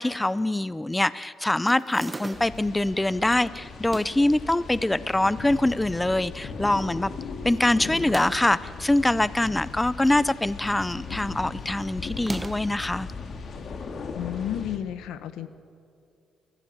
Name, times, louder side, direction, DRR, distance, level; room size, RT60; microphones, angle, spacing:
voice 1, 0.0-7.1 7.4-13.1, left 1 dB, 10° left, 17 dB, 0.6 m, -24 dB
sound 1, 1.7-2.7 3.7-4.3 5.1-5.7 6.1-6.2 6.4-6.5 7.9-8.6 9.6-10.4 10.7-11.0 12.1-12.8, right 2 dB, 20° right, 1.1 m, -39 dB
sound 2, 2.3-14.8, left 4 dB, 55° left, 2.5 m, -38 dB
voice 2, 14.1-15.5, left 11 dB, 90° left, 12 dB, 1.3 m, -32 dB
29.5 x 15.0 x 8.8 m, 2.4 s
cardioid pair, 90°, 0 cm